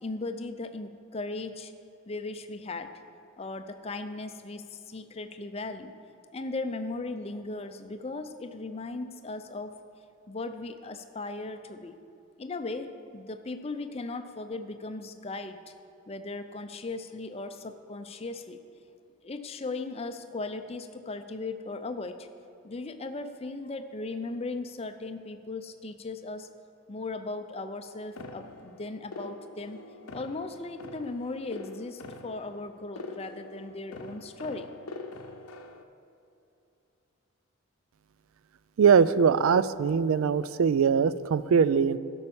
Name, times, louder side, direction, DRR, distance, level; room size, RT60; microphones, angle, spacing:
voice 1, 0.0-1.7 2.1-2.9 3.4-5.9 6.3-9.7 10.3-12.0 12.4-15.7 16.1-18.6 19.2-22.3 22.6-26.5 26.9-29.8 30.1-34.7, left 3 dB, 25° left, 8 dB, 0.5 m, -37 dB
sound 1, 28.2-35.8, left 3 dB, 75° left, 0.7 m, -44 dB
voice 2, 38.8-42.0, right 6 dB, 65° right, 16 dB, 0.3 m, -22 dB
12.5 x 5.4 x 7.1 m, 2.8 s
head